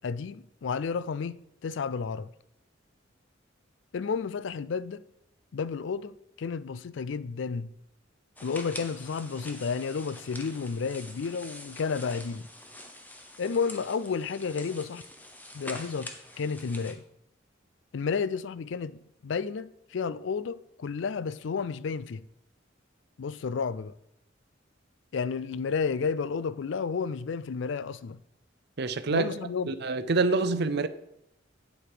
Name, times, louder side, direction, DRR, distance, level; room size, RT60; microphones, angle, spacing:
voice 1, 0.0-1.4 1.6-2.3 3.9-5.0 5.5-7.7 8.4-12.5 13.4-15.0 15.5-16.1 16.4-17.0 17.9-22.2 23.2-23.9 25.1-28.2 29.1-29.7, left 5 dB, 65° left, 0.4 m, -31 dB
sound 1, 8.4-16.9, left 1 dB, 10° left, 1.0 m, -45 dB
voice 2, 28.8-29.3 29.7-30.9, right 3 dB, 55° right, 0.6 m, -26 dB
8.7 x 7.6 x 4.9 m
head